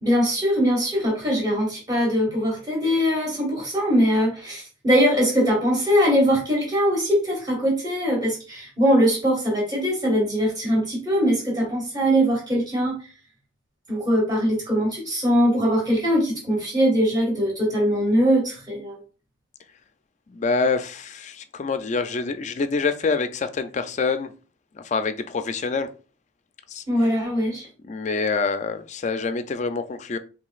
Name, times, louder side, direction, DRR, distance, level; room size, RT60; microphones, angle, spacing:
voice 1, 0.0-13.0 13.9-19.0 26.9-27.7, equal, 20° right, 1.6 m, -21 dB
voice 2, 20.3-24.3 24.7-25.9 26.7-26.8 27.8-30.2, left 4 dB, 35° left, 0.3 m, -26 dB
4.8 x 3.2 x 2.4 m
head